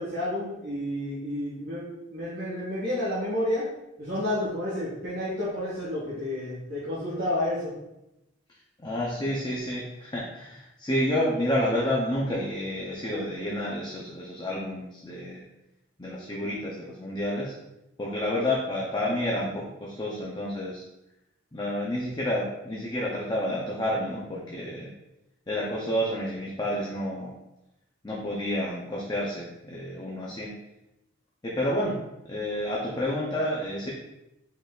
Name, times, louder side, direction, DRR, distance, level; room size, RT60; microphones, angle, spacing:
voice 1, 0.0-1.8 2.1-3.6 4.0-7.7, left 1 dB, 50° right, -9 dB, 1.5 m, -30 dB
voice 2, 8.8-15.4 16.0-17.5 18.0-20.8 21.5-24.9 25.5-27.3 28.0-30.5 31.4-32.0 32.3-33.9, left 1 dB, 20° left, -5 dB, 0.6 m, -29 dB
5.3 x 3.9 x 2.4 m, 0.90 s
head